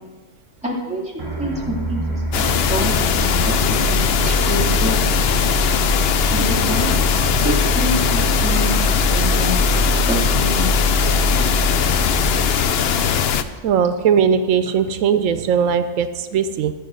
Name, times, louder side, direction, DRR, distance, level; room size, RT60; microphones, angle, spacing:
voice 1, 0.6-5.0 6.3-9.5 10.1-10.7, right 1 dB, 5° right, -4 dB, 2.4 m, -27 dB
sound 1, 1.2-13.9, equal, 25° right, 2.0 m, -23 dB
sound 2, 2.3-13.4, left 7 dB, 60° left, 0.7 m, -20 dB
voice 2, 13.6-16.7, right 7 dB, 85° right, 10 dB, 1.0 m, -19 dB
13.0 x 7.4 x 6.2 m, 1.3 s
omnidirectional pair, 1.3 m